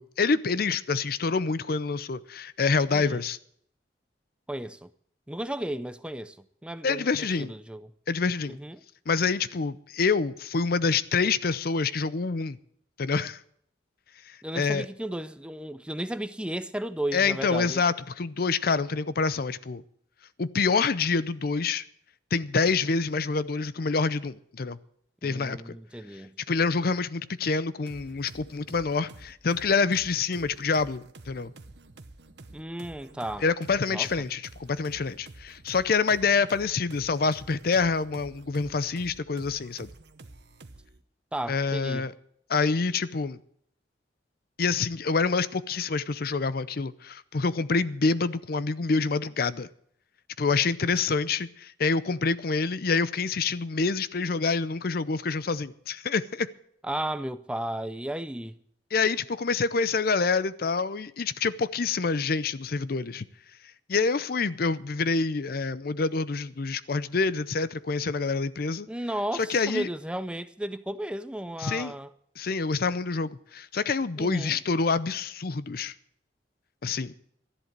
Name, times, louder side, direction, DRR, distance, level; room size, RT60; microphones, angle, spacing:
voice 1, 0.0-3.4 6.8-7.5 8.1-8.6 9.1-12.6 13.0-13.4 14.3-14.9 17.1-19.8 20.4-21.8 22.3-24.8 25.2-25.8 26.5-31.5 33.4-39.9 41.5-42.1 42.5-43.4 44.6-49.7 50.4-56.5 58.9-63.3 63.9-68.9 69.3-69.9 71.6-71.9 72.4-75.9 76.8-77.1, left 4 dB, 55° left, 0.6 m, -27 dB
voice 2, 4.5-4.9 5.3-6.4 6.6-7.9 8.5-8.8 14.4-17.8 25.2-26.4 32.5-33.4 33.9-34.1 41.3-42.1 56.8-58.6 68.9-72.1 74.2-74.6, right 1 dB, 5° right, 0.5 m, -34 dB
sound 1, 27.9-41.0, right 2 dB, 65° right, 1.0 m, -49 dB
13.0 x 11.0 x 6.6 m
head